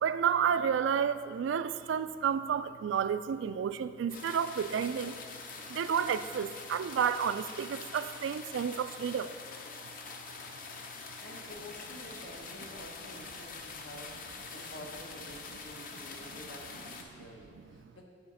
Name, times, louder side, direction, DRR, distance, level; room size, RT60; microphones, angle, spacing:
voice 1, 0.0-5.2 5.7-9.3, right 7 dB, 80° right, 13 dB, 0.3 m, -31 dB
sound 1, 4.1-17.0, left 4 dB, 50° left, 0.6 m, -45 dB
voice 2, 11.2-18.0, left 1 dB, 80° left, 0 dB, 1.2 m, -49 dB
7.9 x 4.9 x 5.4 m, 2.2 s
head